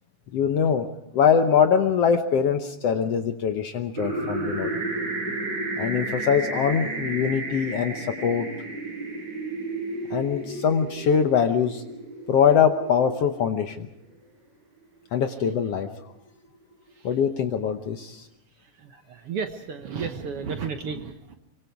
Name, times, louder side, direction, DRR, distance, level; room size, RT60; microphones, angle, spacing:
voice 1, 0.3-0.9 1.1-4.7 5.8-8.5 10.1-11.8 12.3-13.9 15.1-15.9 17.0-18.2, left 7 dB, 65° left, 7 dB, 1.7 m, -23 dB
sound 1, 4.0-13.8, right 2 dB, 30° right, 7.9 m, -32 dB
voice 2, 18.8-21.4, right 6 dB, 60° right, 6 dB, 1.8 m, -33 dB
24.0 x 24.0 x 4.8 m, 0.83 s
omnidirectional pair, 3.6 m